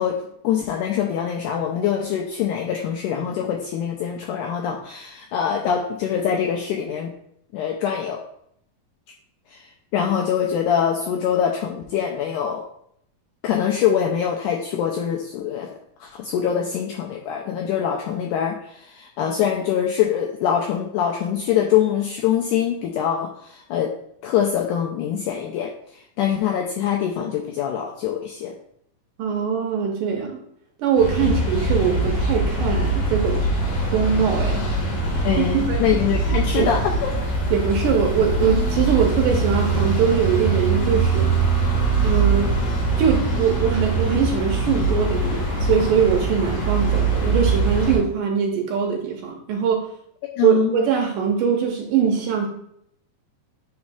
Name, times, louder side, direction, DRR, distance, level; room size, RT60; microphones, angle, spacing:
voice 1, 0.0-7.1 7.5-8.2 9.5-12.6 13.4-15.7 16.0-23.9 24.2-25.7 26.2-28.5 31.2-31.3 35.2-37.1 50.4-50.9, left 9 dB, 90° left, 2 dB, 1.8 m, -24 dB
voice 2, 29.2-30.4 30.8-33.5 33.9-34.7 35.1-35.8 36.5-36.7 37.5-41.3 42.0-42.6 43.0-49.9 50.4-52.5, right 7 dB, 75° right, 1 dB, 2.2 m, -22 dB
sound 1, 31.0-48.0, right 3 dB, 60° left, 3.1 m, -22 dB
9.4 x 4.3 x 2.4 m, 0.71 s
omnidirectional pair, 4.2 m